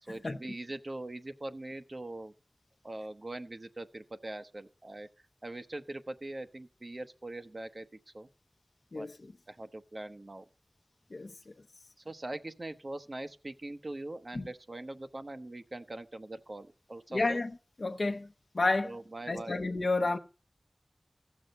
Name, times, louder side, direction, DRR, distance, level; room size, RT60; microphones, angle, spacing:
voice 1, 0.0-2.3 2.8-5.1 5.4-8.3 8.9-9.1 9.5-10.4 12.0-17.4 18.8-19.6, right 2 dB, 60° right, 0.9 m, -42 dB
voice 2, 17.1-17.5 17.8-18.3 18.5-18.9 19.3-20.2, left 3 dB, 80° left, 0.6 m, -30 dB
15.5 x 6.3 x 5.2 m
wide cardioid pair, 50°, 0 cm